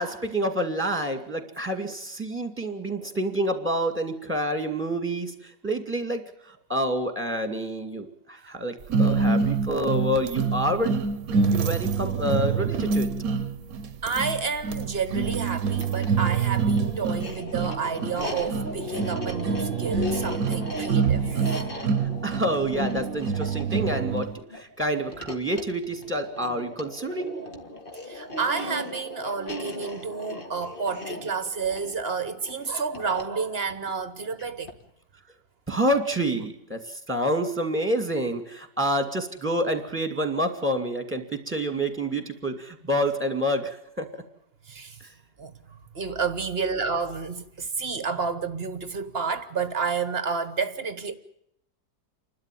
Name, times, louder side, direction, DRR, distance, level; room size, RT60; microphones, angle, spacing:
voice 1, 0.0-6.2 6.5-11.0 11.5-13.1 22.2-27.3 35.7-44.2, equal, 5° right, 2.3 m, -28 dB
sound 1, 8.9-24.4, right 5 dB, 60° right, 1.4 m, -26 dB
voice 2, 14.0-21.9 28.1-34.7 44.7-45.0 45.4-45.5 45.9-51.1, right 5 dB, 40° right, 1.3 m, -30 dB
sound 2, 15.7-34.9, left 1 dB, 30° left, 2.0 m, -38 dB
28.5 x 12.5 x 9.3 m
omnidirectional pair, 1.8 m